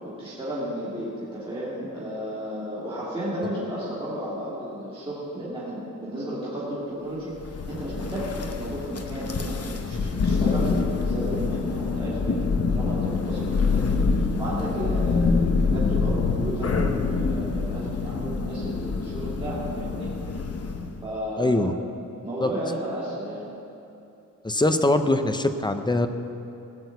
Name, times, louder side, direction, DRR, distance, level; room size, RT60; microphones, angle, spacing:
voice 1, 0.0-20.1 21.0-21.6 22.2-23.5, equal, 15° right, -10 dB, 2.9 m, -33 dB
Thunder, 7.4-21.0, left 4 dB, 50° left, 0.9 m, -26 dB
voice 2, 21.4-21.7 22.4-22.5 24.4-26.1, left 2 dB, 15° left, 8 dB, 0.6 m, -22 dB
17.5 x 6.2 x 8.1 m, 2.8 s
wide cardioid pair, 160°, 31 cm